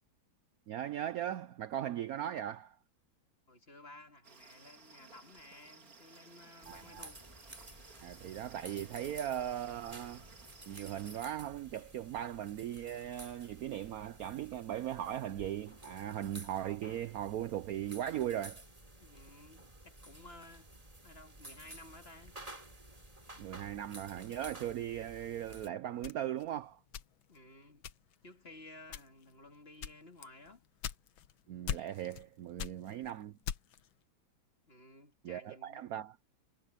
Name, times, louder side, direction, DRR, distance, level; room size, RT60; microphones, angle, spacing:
voice 1, 0.7-2.8 6.7-7.1 8.0-10.3 10.7-18.6 23.4-26.8 31.5-33.4 35.2-36.2, right 11 dB, 80° right, 0.8 m, -38 dB
voice 2, 3.5-7.2 19.0-20.7 21.0-22.4 27.3-27.9 28.2-30.6 34.7-35.9, left 2 dB, 30° left, 2.8 m, -55 dB
sound 1, 4.2-11.2, right 4 dB, 45° right, 2.6 m, -58 dB
sound 2, 6.6-25.7, right 1 dB, 15° right, 3.1 m, -53 dB
sound 3, 26.0-27.4 27.8-28.3 28.8-29.3 29.8-31.3 31.7-32.3 32.6-33.9, left 9 dB, 75° left, 1.7 m, -41 dB
omnidirectional pair, 2.2 m